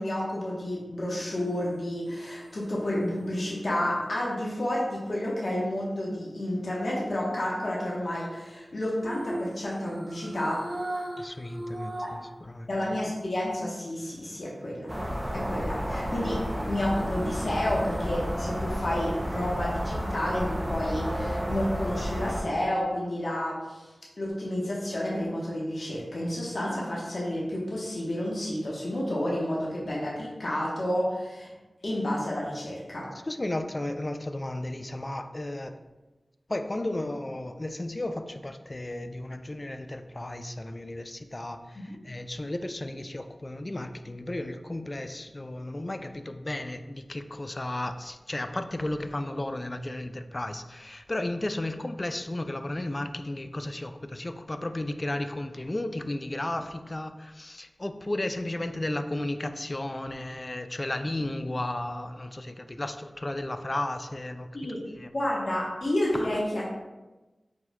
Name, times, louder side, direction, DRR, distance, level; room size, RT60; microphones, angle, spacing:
voice 1, 0.0-10.6 12.0-12.1 12.7-14.9 15.3-16.4 16.7-23.9 24.2-31.5 31.8-33.1 41.9-42.0 64.5-64.8 65.1-66.7, left 1 dB, 65° left, -5 dB, 1.0 m, -30 dB
sound 1, 1.2-5.4 9.0-12.4 12.8-12.9 15.7-18.6 18.9-19.0, right 1 dB, 80° right, 0.6 m, -40 dB
voice 2, 11.2-12.8 33.1-35.8 36.5-65.1 66.1-66.4, left 1 dB, 35° left, 9 dB, 0.3 m, -34 dB
sound 2, 14.9-22.4, equal, 10° right, 0.6 m, -31 dB
4.5 x 4.3 x 2.2 m, 1.1 s
wide cardioid pair, 60°, 0 cm